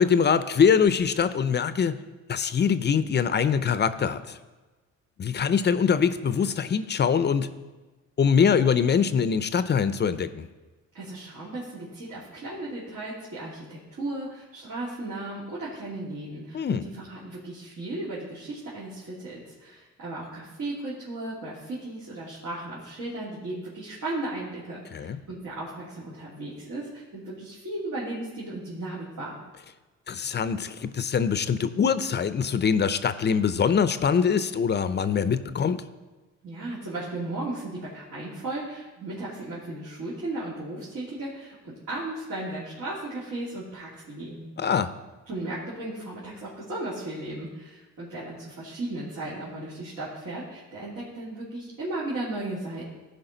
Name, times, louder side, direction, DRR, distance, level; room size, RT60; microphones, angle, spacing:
voice 1, 0.0-2.0 2.3-4.4 5.2-7.5 8.2-10.5 16.5-16.9 24.9-25.2 30.1-35.8 44.6-44.9, left 6 dB, 35° left, 13 dB, 0.5 m, -23 dB
voice 2, 10.9-29.4 36.4-44.5 45.3-52.8, right 2 dB, 70° right, -8 dB, 2.8 m, -35 dB
15.5 x 5.3 x 3.9 m, 1.2 s
cardioid pair, 90°, 30 cm